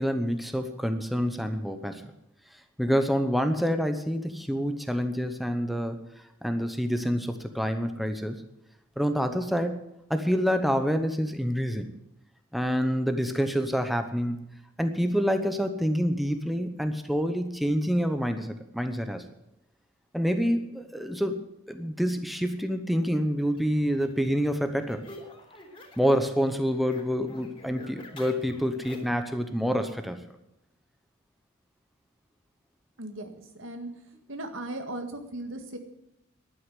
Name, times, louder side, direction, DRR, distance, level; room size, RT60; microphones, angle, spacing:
voice 1, 0.0-2.0 2.8-6.0 6.4-8.4 9.0-9.8 10.1-11.9 12.5-14.4 14.8-19.2 20.1-25.1 26.0-30.2, equal, ahead, 7 dB, 0.9 m, -27 dB
sound 1, 23.5-26.2 26.5-29.2, left 1 dB, 25° left, 3.4 m, -48 dB
voice 2, 33.0-33.9 34.3-35.8, right 1 dB, 80° right, 6 dB, 1.9 m, -37 dB
11.5 x 9.5 x 9.2 m, 0.84 s
head